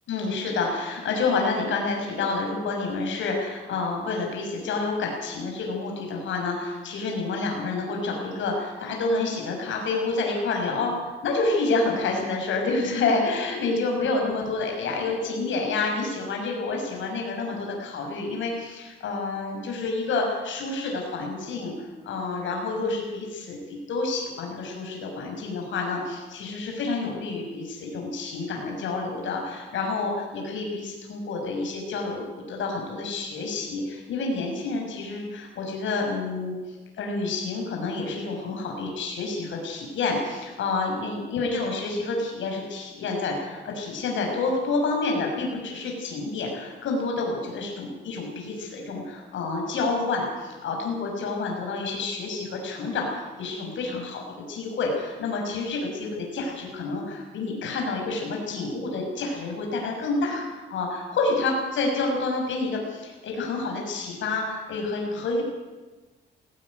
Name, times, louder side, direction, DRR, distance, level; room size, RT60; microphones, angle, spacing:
voice 1, 0.1-54.2 54.5-65.4, left 3 dB, 75° left, 0 dB, 6.2 m, -28 dB
18.0 x 17.5 x 9.6 m, 1.2 s
cardioid pair, 90°, 20 cm